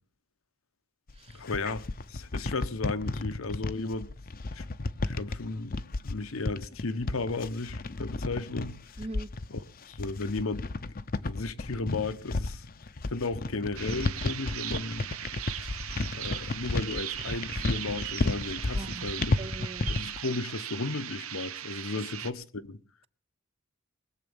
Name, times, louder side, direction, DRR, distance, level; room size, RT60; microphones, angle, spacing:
sound 1, 1.1-20.2, left 2 dB, 45° left, 0.8 m, -33 dB
voice 1, 1.3-1.8 2.1-4.1 4.5-4.6 5.0-8.8 9.5-9.6 9.9-10.7 11.2-12.6 13.1-15.1 16.1-19.3 19.9-22.8, left 3 dB, 75° left, 1.0 m, -34 dB
voice 2, 9.0-9.3 18.7-19.1 19.4-19.9, right 2 dB, 30° right, 0.6 m, -41 dB
sound 2, 13.8-22.3, right 11 dB, 85° right, 0.9 m, -38 dB
21.0 x 7.7 x 7.1 m
head